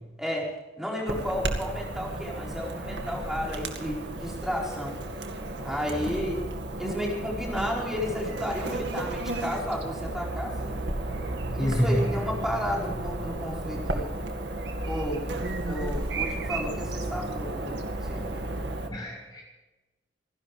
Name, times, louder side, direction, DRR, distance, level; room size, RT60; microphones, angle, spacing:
voice 1, 0.8-5.0 5.6-6.4 6.8-10.8 11.5-14.1 14.8-15.3 15.6-18.4, equal, 5° right, -3 dB, 4.7 m, -32 dB
Chirp tweet / Buzz, 1.1-18.9, right 2 dB, 70° right, 2.1 m, -33 dB
voice 2, 11.6-12.1 18.9-19.4, equal, 25° left, -3 dB, 2.8 m, -26 dB
27.5 x 11.5 x 3.4 m, 1.1 s
head